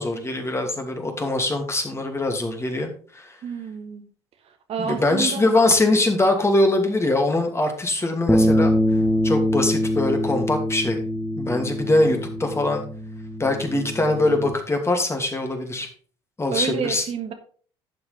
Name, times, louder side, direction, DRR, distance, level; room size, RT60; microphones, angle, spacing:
voice 1, 0.0-3.3 4.8-8.7 9.2-11.0 11.4-12.8 13.4-15.9 16.4-17.0, left 2 dB, 20° left, 4 dB, 2.6 m, -22 dB
voice 2, 3.4-4.1 4.7-5.5 16.5-17.3, right 7 dB, 50° right, 6 dB, 1.5 m, -29 dB
sound 1, 8.3-14.5, equal, ahead, 1.4 m, -24 dB
11.5 x 7.2 x 3.4 m, 0.43 s
hypercardioid pair, 60°, 13 cm